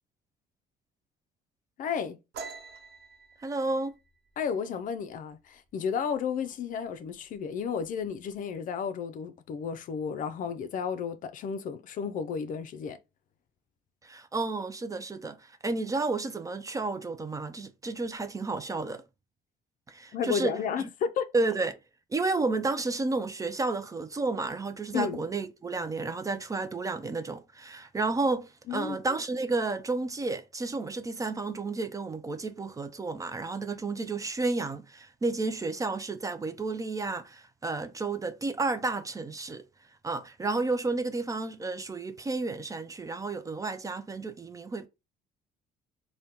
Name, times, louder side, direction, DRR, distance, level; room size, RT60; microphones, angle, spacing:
voice 1, 1.8-2.2 4.4-13.0 20.1-21.3 24.9-25.2 28.7-29.0, left 7 dB, 50° left, 0.4 m, -32 dB
sound 1, 2.3-5.8 6.1-6.4 6.8-7.3 7.6-8.4, right 5 dB, 70° right, 0.9 m, -46 dB
voice 2, 3.4-4.0 14.0-19.0 19.9-20.6 21.3-21.8 22.1-39.6 40.0-44.9, right 3 dB, 20° right, 0.3 m, -31 dB
3.5 x 2.2 x 2.8 m
cardioid pair, 110°, 17 cm